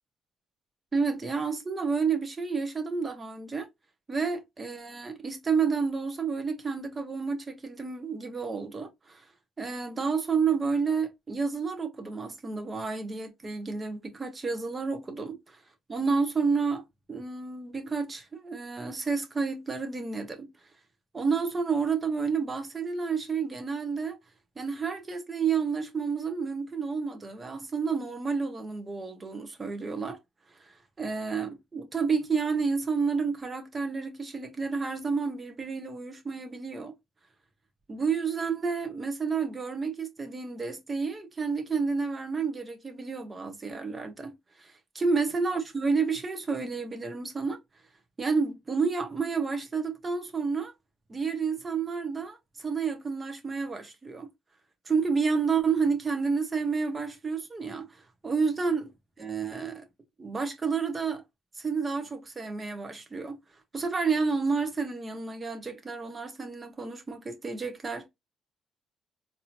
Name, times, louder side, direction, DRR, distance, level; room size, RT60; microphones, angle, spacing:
voice 1, 0.9-3.7 4.1-9.3 9.6-15.6 15.9-16.8 17.1-20.5 21.1-24.2 24.5-30.2 30.5-36.9 37.9-47.6 48.2-50.7 51.1-54.3 54.8-58.9 59.2-59.8 60.2-61.2 61.5-63.4 63.7-68.1, right 5 dB, 30° right, 1.3 m, -30 dB
4.0 x 2.9 x 2.7 m
cardioid pair, 90°, 0 cm